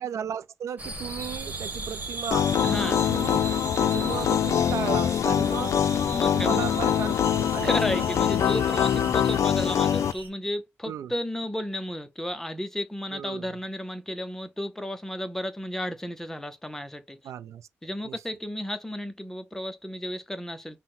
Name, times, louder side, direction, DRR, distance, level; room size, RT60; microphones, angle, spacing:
voice 1, 0.0-2.5 2.8-3.4 3.8-5.8 6.3-7.8 8.9-9.2 10.9-11.1 13.1-13.5 17.2-17.7 18.0-18.2, right 8 dB, 80° right, 0.4 m, -35 dB
sound 1, 0.8-10.3, right 3 dB, 35° right, 1.3 m, -38 dB
sound 2, 2.3-10.1, left 9 dB, 75° left, 0.4 m, -24 dB
voice 2, 2.6-3.0 6.0-6.7 7.6-17.3 17.8-20.8, left 1 dB, 5° left, 0.5 m, -33 dB
5.7 x 2.1 x 4.1 m
wide cardioid pair, 160°, 5 cm